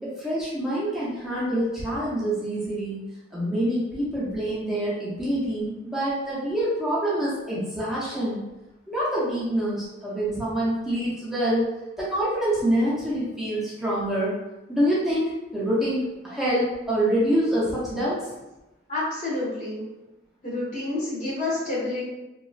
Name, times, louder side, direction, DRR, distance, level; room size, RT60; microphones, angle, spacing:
voice 1, 0.0-3.0 3.3-8.4 8.9-11.6 12.0-14.3 14.7-18.3, right 1 dB, ahead, -9 dB, 0.5 m, -26 dB
voice 2, 18.9-19.8 20.4-22.0, left 2 dB, 40° left, -8 dB, 1.1 m, -28 dB
3.0 x 2.3 x 2.3 m, 0.99 s
head